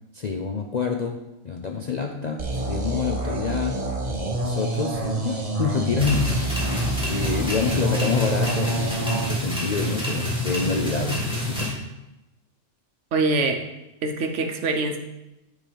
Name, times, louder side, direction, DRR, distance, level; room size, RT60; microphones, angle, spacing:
voice 1, 0.1-3.9 4.4-11.7, left 5 dB, 50° left, 3 dB, 0.5 m, -27 dB
sound 1, 2.4-9.3, right 2 dB, 30° right, 1.2 m, -27 dB
sound 2, 6.0-11.7, left 1 dB, 5° right, 2.0 m, -28 dB
voice 2, 13.1-13.6 14.0-15.0, right 3 dB, 65° right, 5 dB, 1.2 m, -24 dB
10.5 x 3.9 x 5.1 m, 0.95 s
omnidirectional pair, 1.3 m